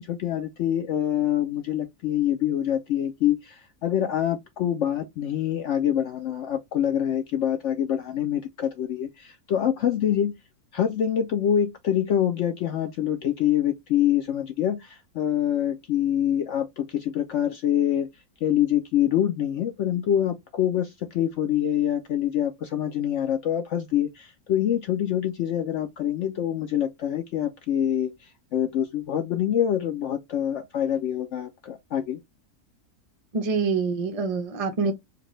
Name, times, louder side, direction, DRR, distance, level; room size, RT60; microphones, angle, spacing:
voice 1, 0.0-10.3 10.7-18.1 18.4-32.2, left 10 dB, 65° left, 0.7 m, -25 dB
voice 2, 33.3-34.9, right 4 dB, 55° right, 0.4 m, -25 dB
5.0 x 2.2 x 3.0 m
omnidirectional pair, 1.6 m